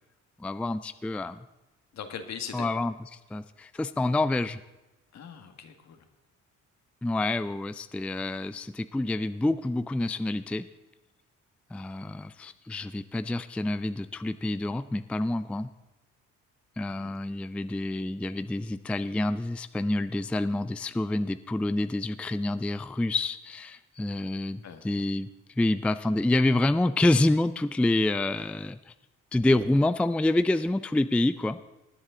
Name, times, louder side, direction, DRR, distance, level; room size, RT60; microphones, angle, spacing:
voice 1, 0.4-1.5 2.5-4.6 7.0-10.7 11.7-15.7 16.8-25.3 25.6-28.9 29.3-31.7, left 2 dB, 5° left, 12 dB, 0.4 m, -27 dB
voice 2, 1.9-2.7 5.1-6.1 16.9-17.2 24.6-24.8, left 7 dB, 65° left, 6 dB, 1.7 m, -41 dB
18.5 x 9.8 x 3.8 m, 1.0 s
cardioid pair, 90°, 30 cm